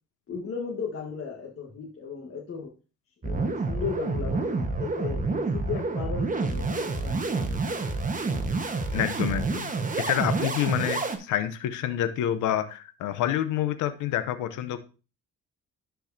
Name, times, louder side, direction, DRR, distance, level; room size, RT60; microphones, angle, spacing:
voice 1, 0.3-2.7 3.2-8.0, left 6 dB, 45° left, 0 dB, 1.5 m, -36 dB
sound 1, 3.2-11.2, right 3 dB, 25° right, 1.2 m, -28 dB
voice 2, 8.9-9.7 10.0-14.8, left 11 dB, 85° left, 10 dB, 0.8 m, -28 dB
11.5 x 4.6 x 2.7 m, 0.33 s
cardioid pair, 90°, 30 cm